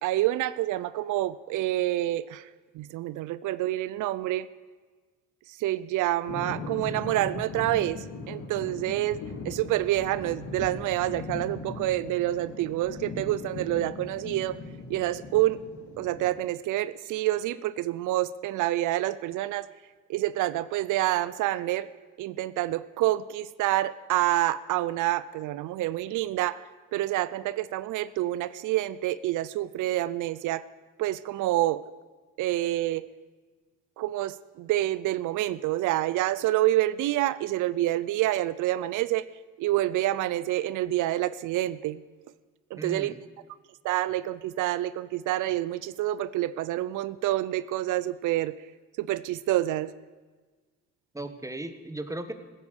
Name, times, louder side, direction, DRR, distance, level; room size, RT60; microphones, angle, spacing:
voice 1, 0.0-2.5 2.7-4.5 5.5-14.6 14.9-15.6 16.0-19.7 20.1-21.9 22.2-26.6 26.9-30.7 31.0-31.8 32.4-33.1 34.0-39.3 39.6-42.0 42.7-43.1 43.8-48.6 49.0-49.9, right 15 dB, 85° right, 17 dB, 0.5 m, -27 dB
sound 1, 6.3-16.3, left 3 dB, 70° left, 2.4 m, -39 dB
voice 2, 42.8-43.2 51.1-52.3, right 1 dB, 10° right, 9 dB, 1.5 m, -36 dB
15.5 x 9.9 x 8.1 m, 1.4 s
cardioid pair, 90°, 30 cm